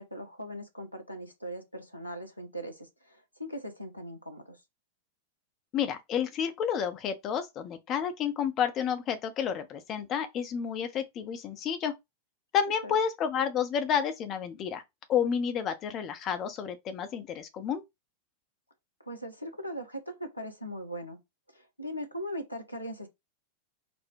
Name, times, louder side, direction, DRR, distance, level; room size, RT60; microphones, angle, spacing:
voice 1, 0.0-4.6 12.8-12.9 19.0-21.2 21.5-23.1, equal, 90° left, 1.1 m, -40 dB
voice 2, 5.7-11.9 12.5-14.8 15.1-17.8, left 8 dB, 35° left, 0.6 m, -30 dB
4.3 x 2.1 x 4.5 m
figure-of-eight pair, 90°, 0 cm